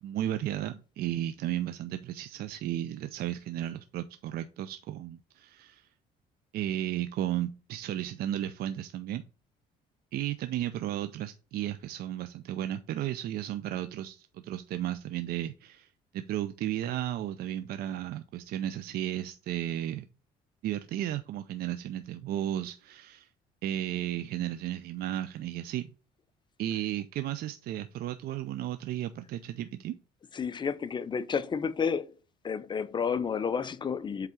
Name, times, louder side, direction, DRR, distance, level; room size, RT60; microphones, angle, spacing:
voice 1, 0.0-5.9 6.5-9.2 10.1-15.9 16.1-20.0 20.6-23.3 23.6-25.9 26.6-30.0, right 12 dB, 65° right, 0.5 m, -34 dB
voice 2, 30.3-32.2 32.4-34.3, left 6 dB, 25° left, 0.5 m, -31 dB
8.0 x 3.6 x 4.3 m
cardioid pair, 110°, 17 cm